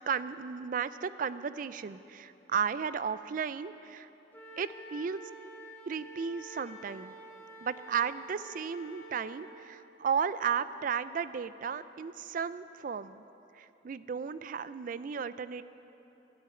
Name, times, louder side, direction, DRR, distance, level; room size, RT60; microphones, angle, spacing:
voice 1, 0.1-4.1 4.6-5.2 5.9-7.1 7.6-13.2 13.6-15.6, right 6 dB, 45° right, 15 dB, 0.3 m, -34 dB
Wind instrument woodwind instrument, 4.3-9.5, right 1 dB, 10° left, 2.1 m, -49 dB
13.0 x 8.6 x 8.9 m, 3.0 s
head